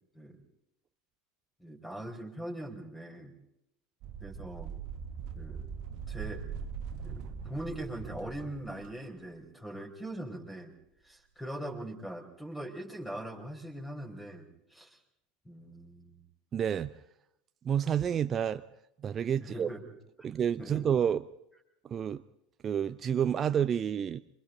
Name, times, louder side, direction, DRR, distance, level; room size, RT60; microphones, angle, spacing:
voice 1, 1.6-3.3 4.2-4.7 5.3-5.6 6.1-6.4 7.0-10.7 11.0-15.0 15.4-16.2 19.4-19.8 20.2-20.3 20.6-20.8, right 1 dB, 10° left, 2 dB, 4.8 m, -41 dB
sound 1, 4.0-8.9, right 7 dB, 50° right, 1.6 m, -41 dB
voice 2, 16.5-16.9 17.6-18.6 19.0-19.7 20.2-21.2 21.8-22.2 22.6-24.2, right 8 dB, 30° right, 11 dB, 0.7 m, -29 dB
27.0 x 25.0 x 4.0 m, 0.80 s
figure-of-eight pair, 75°, 0 cm